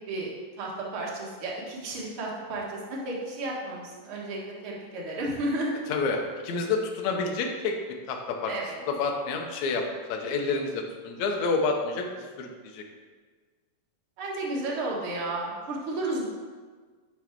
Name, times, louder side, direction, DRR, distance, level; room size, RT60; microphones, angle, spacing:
voice 1, 0.0-5.7 8.5-8.8 14.2-16.3, right 2 dB, 50° right, -3 dB, 1.9 m, -33 dB
voice 2, 5.9-7.8 8.1-8.5 8.9-12.1 12.4-12.8, left 4 dB, 70° left, 2 dB, 1.9 m, -29 dB
10.5 x 4.7 x 4.5 m, 1.5 s
omnidirectional pair, 3.9 m